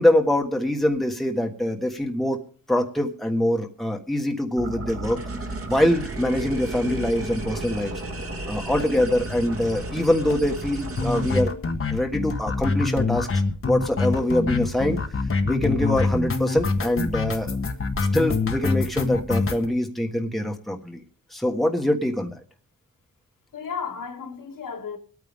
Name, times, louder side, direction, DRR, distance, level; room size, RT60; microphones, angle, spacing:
voice 1, 0.0-2.4 2.7-5.2 5.7-7.9 8.5-11.5 11.9-13.3 13.7-15.0 15.5-17.5 18.1-21.0 21.3-22.3, left 1 dB, ahead, 1.5 m, -24 dB
sound 1, 4.6-11.4, right 2 dB, 40° right, 2.4 m, -33 dB
sound 2, 8.8-9.0 9.3-9.4 9.6-9.7 10.0-10.1 10.3-19.7, left 3 dB, 40° left, 1.3 m, -25 dB
voice 2, 23.5-25.0, left 6 dB, 75° left, 2.2 m, -34 dB
23.0 x 9.3 x 3.6 m
wide cardioid pair, 90°, 33 cm